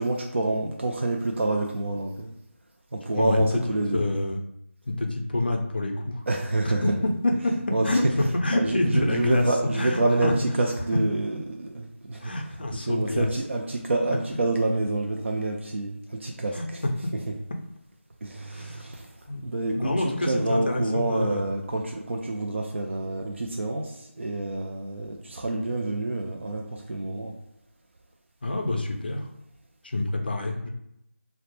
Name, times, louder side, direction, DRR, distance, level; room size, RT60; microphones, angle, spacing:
voice 1, 0.0-2.3 2.9-4.0 6.3-7.0 7.7-7.8 8.5-12.3 12.7-16.8 18.2-19.1 19.4-27.3, right 2 dB, 60° right, 1 dB, 0.3 m, -27 dB
voice 2, 3.2-3.6 3.9-4.4 4.9-6.2 6.6-7.5 7.8-9.5 9.7-10.3 12.2-13.3 16.5-16.7 18.4-18.9 19.3-21.4 28.4-29.3 29.8-30.7, left 2 dB, 45° left, 3 dB, 0.4 m, -27 dB
2.1 x 2.0 x 2.9 m, 0.80 s
figure-of-eight pair, 170°, 7 cm